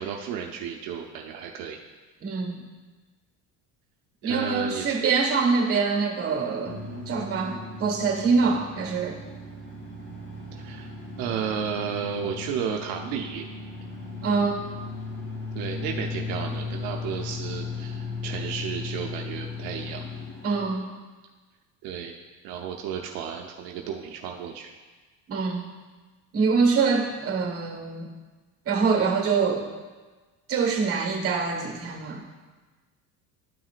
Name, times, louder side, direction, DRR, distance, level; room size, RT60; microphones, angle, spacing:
voice 1, 0.0-1.8 4.2-5.0 10.5-10.9 11.2-13.4 15.5-20.0 21.8-22.2 22.4-24.7, right 7 dB, 80° right, 2 dB, 0.7 m, -33 dB
voice 2, 2.2-2.6 4.2-9.2 14.2-14.7 20.4-20.9 25.3-25.7 26.3-28.1 28.6-29.7 30.5-32.2, right 5 dB, 40° right, 2 dB, 1.4 m, -25 dB
sound 1, 6.6-20.7, left 4 dB, 40° left, 2.4 m, -36 dB
12.0 x 5.9 x 2.5 m, 1.3 s
cardioid pair, 115°, 35 cm